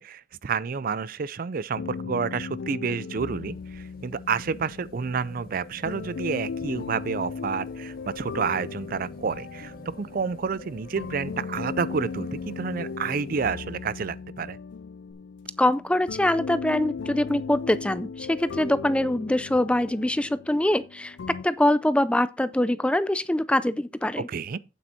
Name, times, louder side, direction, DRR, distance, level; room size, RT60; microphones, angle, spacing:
voice 1, 0.0-14.6 24.2-24.6, right 5 dB, 50° right, 0.4 m, -29 dB
sound 1, 1.7-21.4, left 5 dB, 70° left, 0.4 m, -37 dB
sound 2, 3.1-13.9 15.1-15.2, equal, 55° left, 1.7 m, -48 dB
voice 2, 15.6-21.2 21.4-24.3, left 1 dB, 5° left, 0.4 m, -24 dB
8.8 x 7.8 x 4.2 m
head